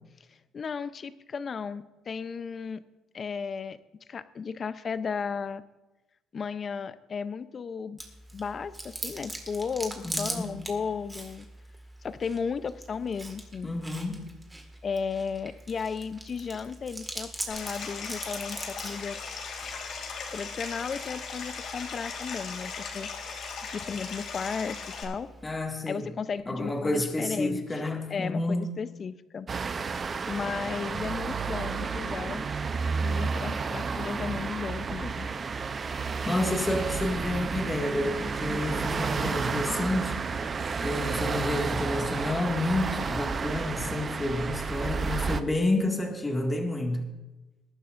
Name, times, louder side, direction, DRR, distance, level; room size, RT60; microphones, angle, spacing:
voice 1, 0.5-2.8 3.1-3.8 4.1-5.6 6.3-8.0 8.3-11.5 12.0-13.7 14.8-19.2 20.3-23.1 23.6-25.3 25.9-27.8 28.1-29.5 30.3-32.5 33.0-35.3, left 5 dB, 35° left, 14 dB, 0.6 m, -34 dB
Chewing mastication, 8.0-25.6, right 1 dB, 10° right, 1.8 m, -42 dB
voice 2, 10.0-10.5 13.6-14.2 25.4-26.1 26.5-28.7 36.3-40.6 40.8-47.1, left 2 dB, 15° left, 2 dB, 2.0 m, -30 dB
Stream, 17.5-25.0, left 5 dB, 60° left, 2.6 m, -38 dB
sound 1, 29.5-45.4, right 5 dB, 35° right, 0.6 m, -31 dB
20.5 x 11.5 x 2.6 m, 1.1 s
cardioid pair, 115°, 0 cm